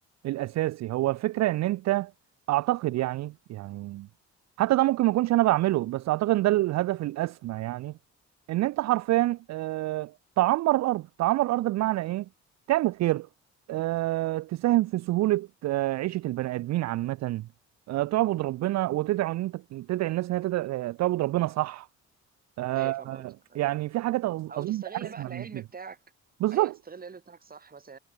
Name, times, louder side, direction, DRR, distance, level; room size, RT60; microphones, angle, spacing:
voice 1, 0.2-2.1 2.5-4.1 4.6-7.9 8.5-10.1 10.4-12.3 12.7-13.3 13.7-17.5 17.9-21.9 22.6-23.2 23.6-25.4 26.4-26.7, right 17 dB, 60° right, 0.4 m, -26 dB
voice 2, 22.7-23.6 24.5-26.0 26.5-28.0, right 5 dB, 30° right, 1.8 m, -44 dB
cardioid pair, 90°, 30 cm